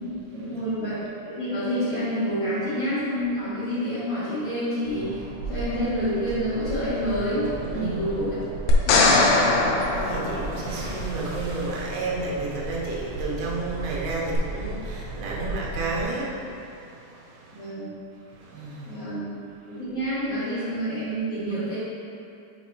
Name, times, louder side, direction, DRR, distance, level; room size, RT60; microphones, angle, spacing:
voice 1, 0.0-5.2 5.5-8.4 8.8-9.3 17.5-17.9 18.9-19.3 19.7-21.8, equal, 60° left, -14 dB, 2.0 m, -28 dB
sound 1, 4.8-16.0, right 3 dB, 70° right, 2.1 m, -35 dB
voice 2, 7.7-8.1 9.8-17.7 18.4-19.0, right 2 dB, 90° right, -4 dB, 3.3 m, -32 dB
sound 2, 8.7-11.0 14.3-14.4, left 2 dB, 85° left, 3.1 m, -21 dB
7.2 x 5.0 x 3.0 m, 2.6 s
omnidirectional pair, 5.3 m